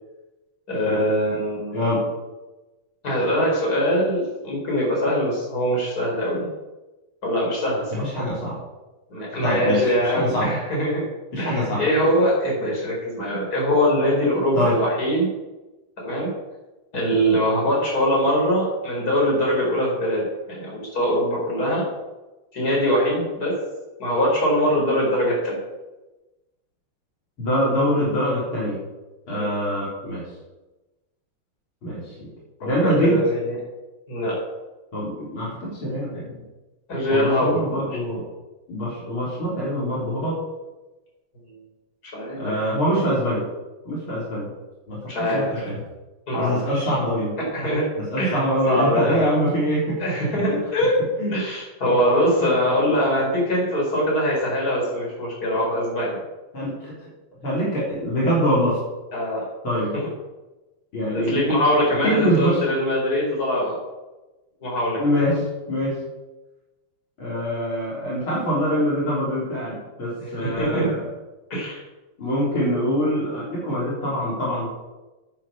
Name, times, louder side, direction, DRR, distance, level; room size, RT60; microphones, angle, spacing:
voice 1, 0.7-1.8 3.0-6.5 7.2-8.0 9.1-11.1 11.4-15.3 16.0-16.3 16.9-21.9 22.5-23.6 24.0-25.6 29.3-29.5 32.6-33.6 34.1-34.4 36.9-38.0 42.1-42.7 45.0-45.7 46.3-47.0 47.4-47.9 48.2-49.3 50.0-51.0 51.3-56.2 59.1-59.4 61.1-63.8 64.6-65.4 70.2-70.9 71.5-71.8, equal, 45° left, -3 dB, 5.4 m, -23 dB
voice 2, 7.9-8.5 9.4-10.5 11.3-11.8 14.5-14.7 27.4-28.8 29.3-30.2 31.8-32.3 32.6-33.2 34.9-36.3 37.1-38.2 38.7-40.4 42.4-43.4 43.8-44.5 44.9-45.8 46.3-47.3 48.1-49.8 50.5-50.6 51.2-51.3 52.9-53.0 56.5-56.9 57.4-58.8 59.6-59.9 60.9-61.4 62.0-62.6 65.0-65.4 65.7-65.9 67.2-71.0 72.2-74.7, equal, 65° left, -7 dB, 4.7 m, -24 dB
10.0 x 9.1 x 7.3 m, 1.1 s
omnidirectional pair, 2.4 m